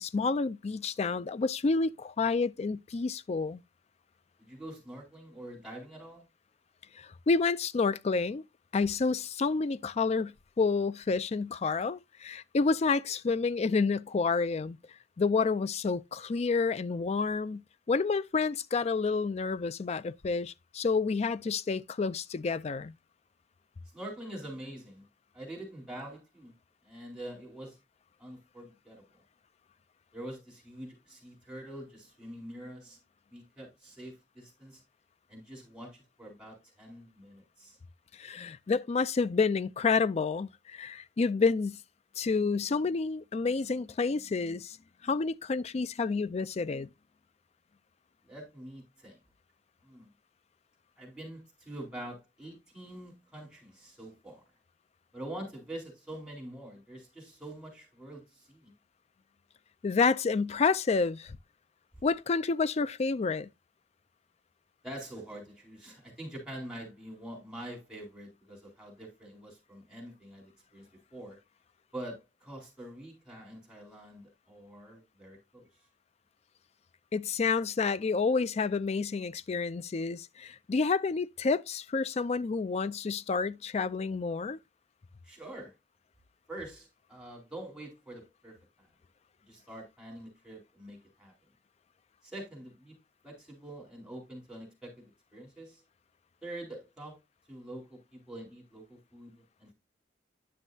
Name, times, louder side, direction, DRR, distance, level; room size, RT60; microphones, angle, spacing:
voice 1, 0.0-3.6 7.0-8.5 8.7-14.8 15.2-22.9 38.1-41.8 42.2-44.8 45.0-46.9 59.8-61.4 62.0-63.5 77.1-84.6, left 4 dB, 35° left, 0.4 m, -29 dB
voice 2, 4.4-6.3 23.9-25.1 25.3-26.5 26.8-27.8 28.2-29.0 30.1-33.0 33.3-34.8 35.3-37.8 48.3-49.2 49.8-50.1 51.0-54.4 55.1-58.7 64.8-70.9 71.1-71.4 71.9-75.7 85.2-85.7 86.5-88.9 89.4-91.3 92.2-92.9 93.2-95.8 96.4-97.2 97.5-99.7, right 1 dB, 5° right, 4.0 m, -45 dB
10.0 x 6.3 x 2.7 m
head